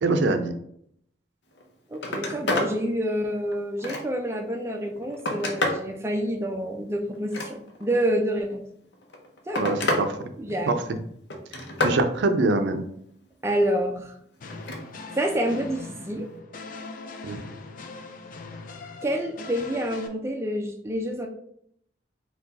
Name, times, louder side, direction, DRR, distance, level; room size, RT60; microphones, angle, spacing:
voice 1, 0.0-0.5 9.6-10.3 10.7-10.8 11.8-12.8 17.2-17.4, right 2 dB, 80° right, 8 dB, 0.5 m, -24 dB
Telephone, 1.5-1.6 1.9-2.7 3.2-4.3 4.9-5.9 7.1-7.9 8.9-10.1 10.4-10.9 11.3-12.0 14.5-14.8 16.2-16.4, left 1 dB, 70° left, 0.8 m, -29 dB
voice 2, 1.9-8.6 9.5-9.8 10.4-10.7 13.4-14.1 15.1-16.3 19.0-21.3, equal, 15° right, 2 dB, 0.4 m, -28 dB
sound 1, 14.4-20.1, left 3 dB, 50° left, 0.5 m, -41 dB
4.5 x 2.4 x 3.9 m, 0.71 s
head